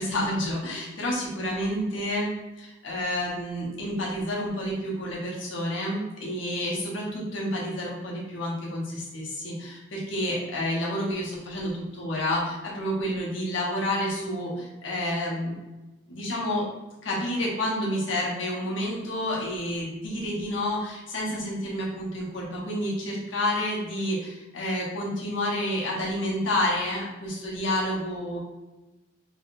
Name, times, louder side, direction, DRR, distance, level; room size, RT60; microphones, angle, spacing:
voice 1, 0.0-15.5 16.1-16.7 17.0-28.4, left 1 dB, 75° left, -4 dB, 1.0 m, -29 dB
3.5 x 3.1 x 2.5 m, 1.1 s
head